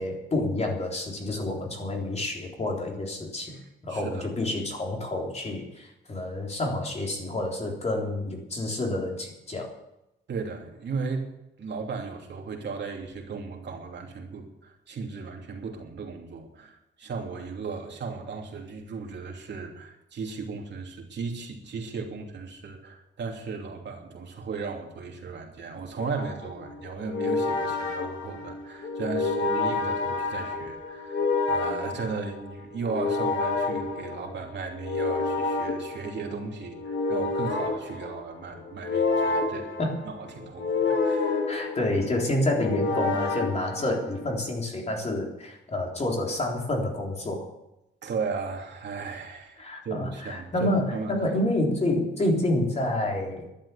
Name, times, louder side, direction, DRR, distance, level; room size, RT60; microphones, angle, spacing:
voice 1, 0.0-3.6 3.8-9.7 39.8-40.1 41.5-47.5 49.6-53.5, left 1 dB, 35° left, 0 dB, 3.7 m, -28 dB
voice 2, 3.5-4.3 10.3-11.3 11.6-39.7 40.0-41.4 48.0-51.1, right 4 dB, 60° right, 2 dB, 2.9 m, -36 dB
sound 1, 26.0-44.4, left 3 dB, 70° left, 3.1 m, -29 dB
12.0 x 11.5 x 8.5 m, 0.88 s
wide cardioid pair, 145°, 20 cm